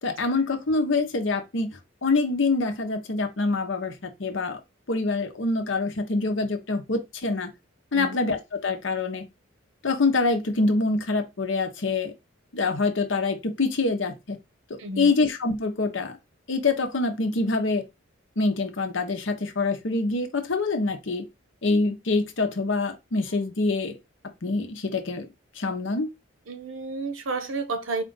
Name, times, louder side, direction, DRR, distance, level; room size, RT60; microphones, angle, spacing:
voice 1, 0.0-4.6 4.9-7.5 7.9-9.2 9.8-12.1 12.5-14.4 14.7-16.1 16.5-17.8 18.4-21.2 21.6-23.9 24.4-25.3 25.6-26.1, left 3 dB, 65° left, 0.8 m, -25 dB
voice 2, 14.8-15.1 26.5-28.0, right 3 dB, 80° right, 0.8 m, -31 dB
4.3 x 2.5 x 3.8 m
head